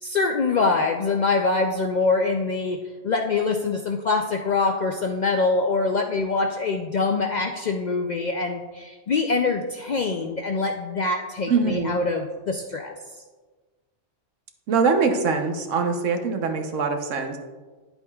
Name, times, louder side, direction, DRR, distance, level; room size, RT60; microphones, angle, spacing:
voice 1, 0.0-12.9, left 3 dB, 60° left, 3 dB, 0.4 m, -24 dB
voice 2, 11.5-12.0 14.7-17.4, right 4 dB, 85° right, 5 dB, 1.2 m, -23 dB
10.0 x 7.8 x 2.3 m, 1.3 s
omnidirectional pair, 1.3 m